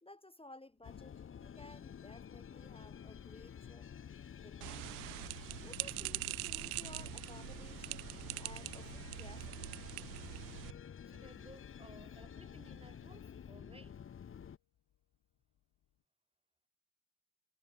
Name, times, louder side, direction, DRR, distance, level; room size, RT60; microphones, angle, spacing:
voice 1, 0.0-3.9 4.4-4.9 5.6-8.1 8.4-9.7, left 2 dB, 10° left, 2.9 m, -56 dB
sound 1, 0.7-16.1, left 11 dB, 55° left, 5.5 m, -81 dB
sound 2, 0.8-14.6, left 8 dB, 30° left, 0.9 m, -50 dB
sound 3, 4.6-10.7, right 23 dB, 70° right, 0.5 m, -43 dB
voice 2, 11.1-14.0, right 2 dB, 10° right, 3.8 m, -58 dB
figure-of-eight pair, 40°, 44 cm